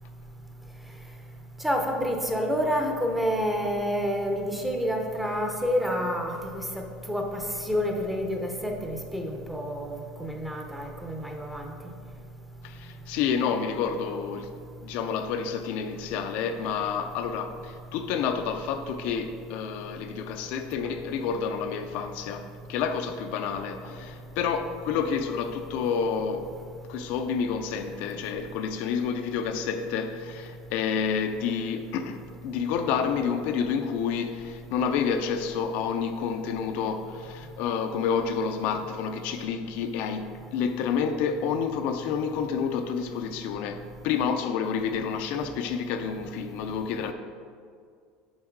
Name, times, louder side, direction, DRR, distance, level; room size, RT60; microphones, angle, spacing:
voice 1, 1.6-11.7, equal, 5° right, 0.7 m, -29 dB
voice 2, 12.6-14.5 14.8-26.5 26.9-47.1, left 6 dB, 60° left, 0.5 m, -29 dB
7.3 x 5.3 x 4.6 m
cardioid pair, 165°, 3 cm